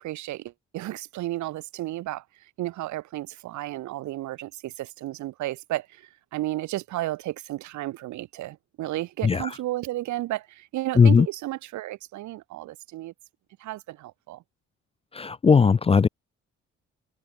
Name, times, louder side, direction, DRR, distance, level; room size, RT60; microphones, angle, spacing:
voice 1, 0.0-2.2 2.6-13.1 13.6-14.4, right 16 dB, 70° right, 0.6 m, -33 dB
voice 2, 11.0-11.3 15.1-16.1, left 5 dB, 20° left, 0.3 m, -18 dB
cardioid pair, 90°, 30 cm